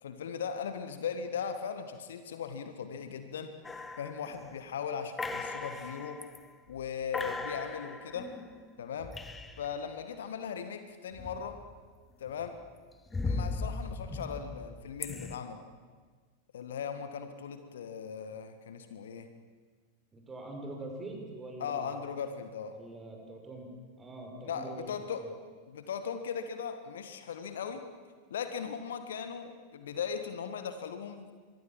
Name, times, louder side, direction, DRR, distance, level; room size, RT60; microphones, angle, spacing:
voice 1, 0.0-3.5 4.0-6.2 6.7-8.3 8.8-9.1 9.6-11.6 12.2-12.6 13.2-15.6 16.5-19.3 21.6-22.7 24.4-25.2 25.7-27.8 28.3-31.3, left 7 dB, 60° left, 9 dB, 1.7 m, -38 dB
sound 1, 3.6-4.6 5.2-6.4 6.8-6.9 7.1-9.8 11.1-11.9 12.3-15.4, left 3 dB, 10° left, 1.6 m, -38 dB
voice 2, 20.1-22.0 22.7-23.7 24.0-25.3, right 2 dB, 15° right, 2 dB, 5.6 m, -44 dB
24.5 x 22.0 x 7.5 m, 1.5 s
figure-of-eight pair, 90°, 0 cm